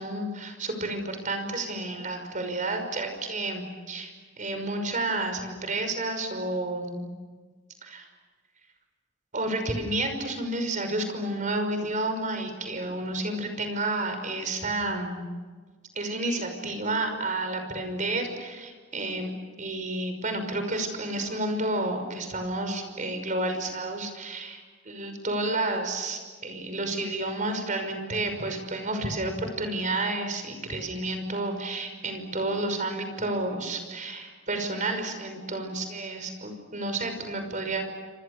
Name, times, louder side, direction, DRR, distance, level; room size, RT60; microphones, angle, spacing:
voice 1, 0.0-7.1 7.8-8.1 9.3-15.2 16.0-19.3 19.6-24.6 24.9-37.8, right 2 dB, 45° right, 6 dB, 5.7 m, -30 dB
28.5 x 26.5 x 6.8 m, 1.4 s
head